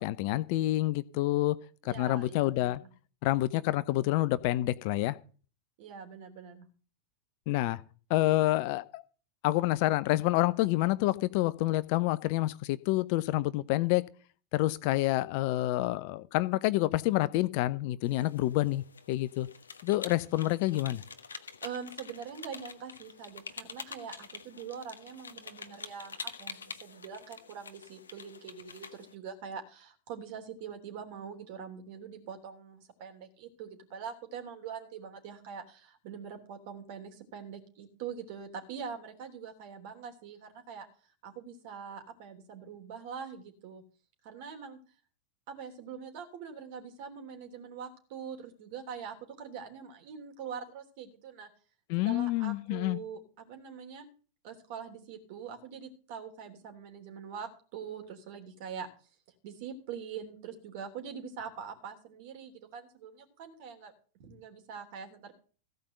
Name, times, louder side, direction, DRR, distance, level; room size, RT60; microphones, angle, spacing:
voice 1, 0.0-1.6 1.8-2.8 3.2-5.2 7.5-7.8 8.1-9.0 9.4-14.0 14.5-19.5 19.8-21.0 51.9-53.0, left 17 dB, 45° left, 0.6 m, -28 dB
voice 2, 1.8-2.9 5.8-6.7 21.6-40.8 41.2-43.8 44.2-44.8 45.5-51.5 52.0-54.1 54.4-58.9 59.4-63.9 64.2-65.3, right 7 dB, 50° right, 3.2 m, -43 dB
sound 1, 18.0-29.1, left 5 dB, 70° left, 1.1 m, -46 dB
15.5 x 5.3 x 7.9 m
figure-of-eight pair, 90°, 0 cm